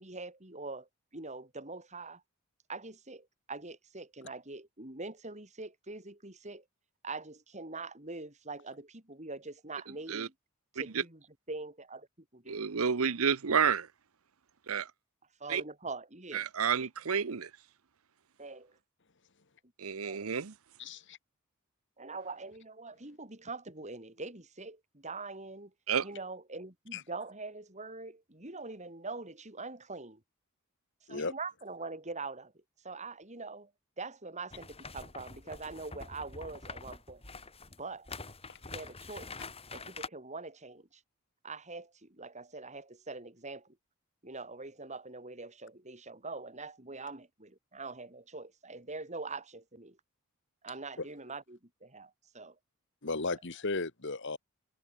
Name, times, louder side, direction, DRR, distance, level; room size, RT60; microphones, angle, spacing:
voice 1, 0.0-2.2 2.7-6.6 7.0-10.3 10.7-12.1 12.3-12.7 15.4-16.5 18.4-18.8 20.0-20.3 22.0-25.7 26.0-30.2 31.1-33.7 34.0-37.2 37.8-38.1 38.6-39.3 39.7-41.0 41.4-43.8 44.2-50.0 50.6-52.6, right 3 dB, 30° right, 5.3 m, -43 dB
voice 2, 12.5-13.9 14.7-14.9 15.5-15.6 16.3-17.5 19.8-20.5 25.9-26.0, right 6 dB, 75° right, 0.8 m, -30 dB
voice 3, 20.8-21.2 26.9-27.0 31.1-31.3 38.5-38.6 51.0-51.1 53.0-54.4, left 3 dB, 55° left, 1.9 m, -35 dB
sound 1, 34.5-40.1, left 3 dB, 25° left, 6.7 m, -45 dB
head